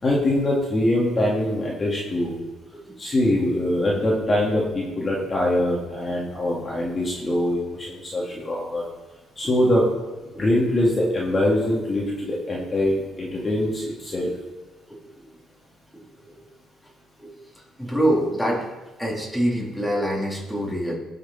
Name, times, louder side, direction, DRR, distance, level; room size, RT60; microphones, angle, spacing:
voice 1, 0.0-2.4 3.0-8.8 9.4-9.8 10.4-14.3, left 1 dB, 25° left, -4 dB, 2.5 m, -23 dB
voice 2, 17.8-18.7 19.0-20.9, equal, ahead, -4 dB, 3.5 m, -25 dB
17.0 x 6.7 x 4.4 m, 1.2 s
cardioid pair, 100°, 0 cm